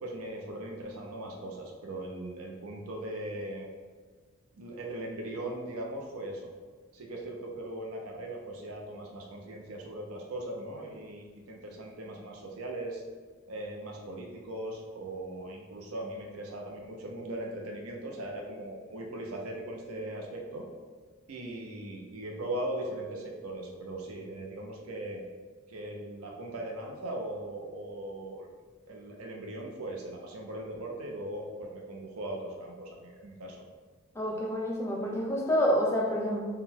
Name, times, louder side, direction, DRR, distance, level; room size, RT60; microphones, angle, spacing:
voice 1, 0.0-3.7 4.5-6.5 6.9-13.0 13.5-20.7 21.3-25.2 25.7-28.5 28.9-33.6, right 1 dB, 85° right, 0 dB, 0.6 m, -39 dB
voice 2, 34.1-36.4, equal, 10° left, -2 dB, 0.5 m, -28 dB
3.9 x 2.2 x 4.2 m, 1.5 s
head